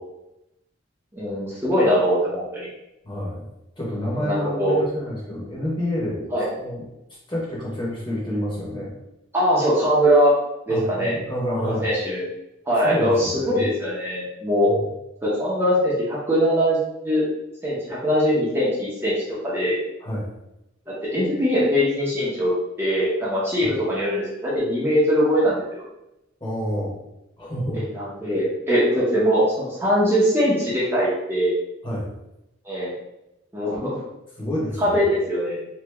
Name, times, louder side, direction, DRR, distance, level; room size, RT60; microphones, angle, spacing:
voice 1, 1.1-2.7 4.1-4.8 6.3-6.5 9.3-10.3 10.7-11.2 11.5-12.2 12.7-14.7 15.2-17.3 17.6-19.1 19.4-19.8 20.9-22.5 22.8-25.9 27.7-31.5 32.6-32.9 33.5-34.0 34.8-35.6, equal, 10° right, -8 dB, 0.7 m, -21 dB
voice 2, 3.0-3.4 3.8-6.9 7.3-8.9 10.7-11.9 12.8-13.6 14.7-14.8 20.0-20.3 23.6-23.7 26.4-27.0 27.4-27.8 31.8-32.1 34.4-34.9, equal, 25° left, -6 dB, 1.2 m, -28 dB
3.0 x 2.7 x 3.4 m, 0.89 s
head